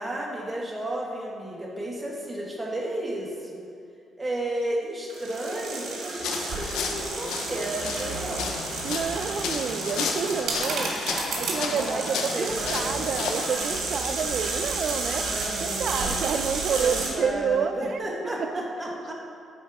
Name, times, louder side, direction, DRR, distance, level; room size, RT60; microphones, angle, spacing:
voice 1, 0.0-3.6 4.2-8.5 11.7-13.1 15.3-16.3 16.8-19.1, right 1 dB, 20° right, -2 dB, 1.7 m, -33 dB
sound 1, 5.1-17.1, right 3 dB, 75° right, 1.9 m, -31 dB
sound 2, 6.2-13.6, left 5 dB, 90° left, 0.7 m, -33 dB
voice 2, 8.8-15.3 15.6-18.0 18.4-18.5, right 6 dB, 60° right, 9 dB, 0.5 m, -29 dB
10.0 x 4.4 x 4.9 m, 2.5 s
cardioid pair, 95°, 0 cm